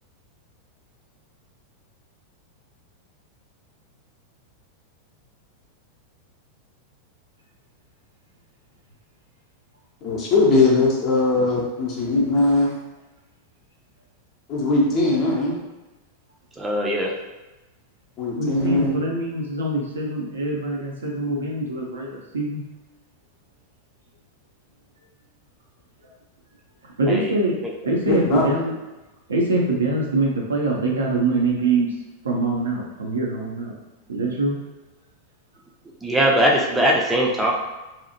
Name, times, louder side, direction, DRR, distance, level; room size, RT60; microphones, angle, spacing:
voice 1, 10.0-12.7 14.5-15.6 18.2-18.9 28.1-28.5, left 2 dB, 35° left, -3 dB, 0.7 m, -20 dB
voice 2, 16.6-17.1 27.1-27.3 27.6-27.7 36.0-37.5, equal, 10° right, -1 dB, 0.5 m, -20 dB
voice 3, 18.4-22.6 27.0-27.6 27.8-28.7 29.3-31.9 32.2-33.7 34.1-34.5, right 2 dB, 70° right, -2 dB, 0.6 m, -24 dB
2.8 x 2.4 x 2.7 m, 1.1 s
figure-of-eight pair, 90°, 0 cm